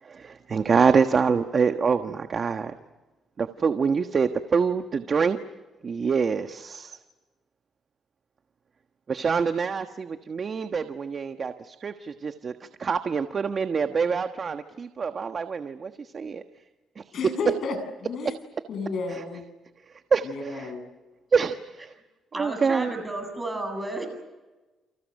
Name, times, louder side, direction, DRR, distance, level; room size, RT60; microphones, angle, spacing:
voice 1, 0.0-2.7 3.4-5.4 5.8-7.0 9.1-16.4 16.9-17.2 19.1-19.2 19.8-20.7 21.3-21.9 22.3-22.9, right 5 dB, 45° right, 8 dB, 1.4 m, -26 dB
voice 2, 17.1-17.8 18.0-18.3 18.7-19.4 20.2-20.8, left 3 dB, 65° left, 7 dB, 7.7 m, -31 dB
voice 3, 22.3-24.1, right 2 dB, 15° right, 5 dB, 7.8 m, -32 dB
29.5 x 29.5 x 6.6 m, 1.2 s
cardioid pair, 90°, 0 cm